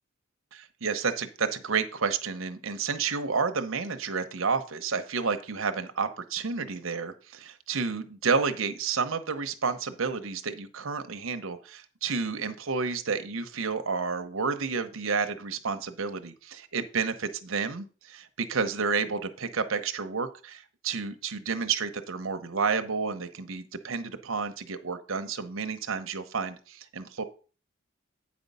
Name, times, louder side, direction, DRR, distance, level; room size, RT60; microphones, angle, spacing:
voice 1, 0.5-27.2, right 5 dB, 75° right, 8 dB, 0.8 m, -30 dB
8.7 x 5.2 x 5.3 m, 0.37 s
head